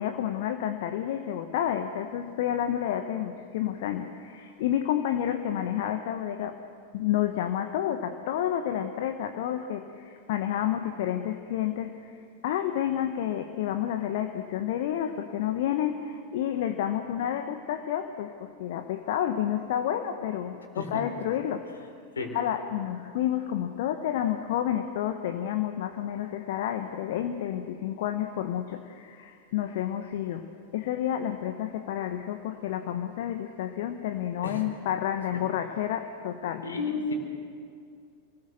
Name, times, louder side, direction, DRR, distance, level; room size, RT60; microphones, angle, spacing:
voice 1, 0.0-6.6 6.9-21.7 22.3-36.7, left 10 dB, 55° left, 8 dB, 1.1 m, -30 dB
voice 2, 36.6-37.1, left 4 dB, 70° left, 4 dB, 3.9 m, -31 dB
27.5 x 20.0 x 6.7 m, 2.3 s
figure-of-eight pair, 90°, 0 cm